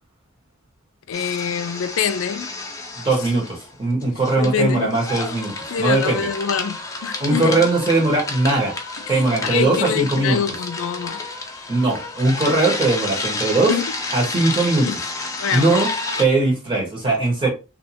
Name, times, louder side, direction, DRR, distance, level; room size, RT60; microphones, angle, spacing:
voice 1, 1.1-2.5 4.4-4.9 5.7-7.6 9.1-11.2 13.7-13.9 14.8-15.0 15.4-15.8, left 7 dB, 65° left, 0.4 m, -25 dB
sound 1, 1.1-3.7 4.0-16.2, left 3 dB, 15° left, 0.5 m, -30 dB
voice 2, 3.0-6.3 7.2-8.7 9.1-10.4 11.7-13.7 14.1-14.9 15.5-15.9 16.2-17.5, right 2 dB, 25° right, 1.4 m, -20 dB
3.3 x 2.7 x 2.9 m
head